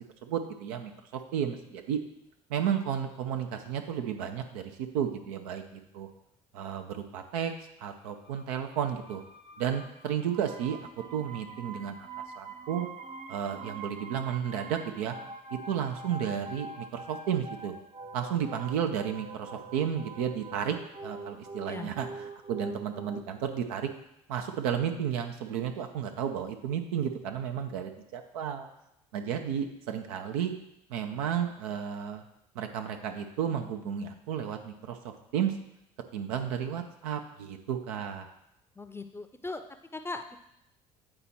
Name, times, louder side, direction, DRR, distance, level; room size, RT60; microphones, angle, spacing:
voice 1, 0.2-0.9 1.3-2.0 2.5-4.6 4.9-6.1 6.5-7.5 7.8-9.2 9.6-10.8 11.1-12.0 12.4-12.9 13.3-15.1 15.5-17.7 18.1-20.8 21.0-22.1 22.5-23.9 24.3-28.7 29.1-30.5 30.9-32.2 32.5-35.5 36.1-38.3, right 8 dB, 75° right, 5 dB, 0.7 m, -32 dB
sound 1, 8.1-23.2, right 3 dB, 30° right, 0.8 m, -44 dB
voice 2, 38.8-39.6 39.9-40.4, left 3 dB, 10° left, 8 dB, 0.7 m, -38 dB
8.8 x 4.2 x 4.3 m, 0.82 s
hypercardioid pair, 55°, 19 cm